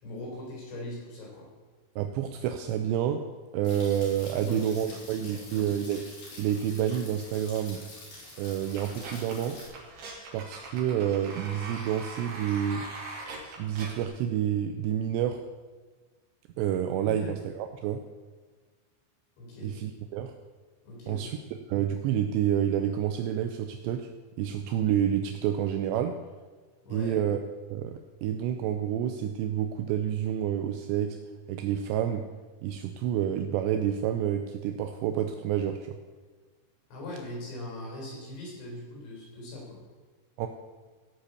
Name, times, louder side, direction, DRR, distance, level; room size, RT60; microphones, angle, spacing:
voice 1, 0.0-1.5 4.3-5.7 17.0-17.3 19.4-19.7 20.8-21.3 26.8-27.2 36.9-39.8, left 1 dB, 75° left, -2 dB, 6.5 m, -41 dB
voice 2, 2.0-3.3 3.5-6.0 6.4-7.8 8.4-9.6 10.3-12.9 13.6-15.4 16.6-18.0 19.6-20.3 21.1-21.4 21.7-24.1 24.4-26.2 26.9-27.4 27.7-31.2 31.5-32.3 32.6-36.0 40.4-40.5, right 10 dB, 80° right, 6 dB, 2.7 m, -29 dB
sound 1, 3.6-9.7, left 2 dB, 55° left, 5.9 m, -47 dB
sound 2, 8.6-14.0, right 3 dB, 60° right, 4.3 m, -42 dB
16.5 x 5.8 x 8.3 m, 1.4 s
omnidirectional pair, 5.3 m